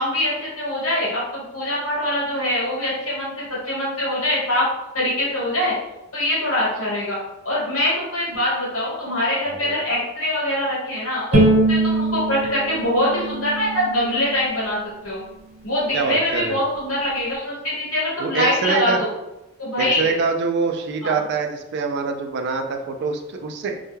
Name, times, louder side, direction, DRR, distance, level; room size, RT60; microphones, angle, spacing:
voice 1, 0.0-4.7 4.9-5.7 6.1-7.2 7.4-14.8 15.0-15.2 15.6-19.1 19.6-20.2 21.0-21.2, left 1 dB, 80° left, -6 dB, 1.2 m, -23 dB
voice 2, 9.4-9.8 15.9-16.6 18.2-19.0 19.8-23.8, right 4 dB, 55° right, 5 dB, 0.3 m, -25 dB
Bowed string instrument, 11.3-14.5, right 2 dB, 85° right, 0.8 m, -21 dB
2.2 x 2.1 x 3.0 m, 0.95 s
head